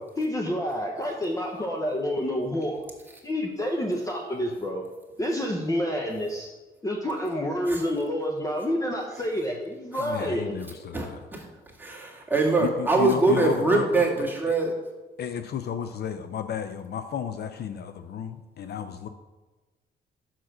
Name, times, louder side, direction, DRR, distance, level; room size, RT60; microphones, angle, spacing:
voice 1, 0.2-2.8 3.2-4.8 5.2-6.5 6.8-10.5, equal, 15° left, 0 dB, 0.8 m, -28 dB
voice 2, 10.0-11.2 12.6-14.1 14.5-14.6 15.2-19.1, left 8 dB, 55° left, 9 dB, 0.5 m, -33 dB
voice 3, 10.9-11.5 11.8-14.7, right 3 dB, 10° right, -2 dB, 1.9 m, -23 dB
5.8 x 4.8 x 6.2 m, 1.2 s
cardioid pair, 90°, 20 cm